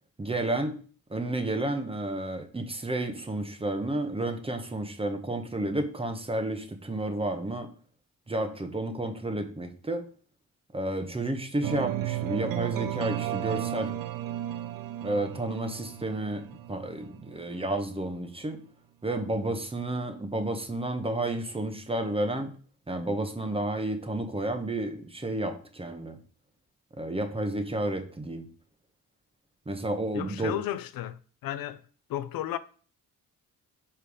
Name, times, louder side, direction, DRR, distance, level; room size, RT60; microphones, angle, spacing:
voice 1, 0.2-0.8 1.1-7.7 8.3-10.0 10.7-13.9 15.0-18.6 19.0-22.6 22.9-26.2 26.9-28.5 29.7-30.6, right 1 dB, 15° right, 1.0 m, -31 dB
sound 1, 11.6-17.5, right 13 dB, 75° right, 0.6 m, -34 dB
voice 2, 30.1-31.8 32.1-32.6, left 12 dB, 80° left, 0.5 m, -33 dB
5.4 x 4.4 x 4.9 m
cardioid pair, 100°, 34 cm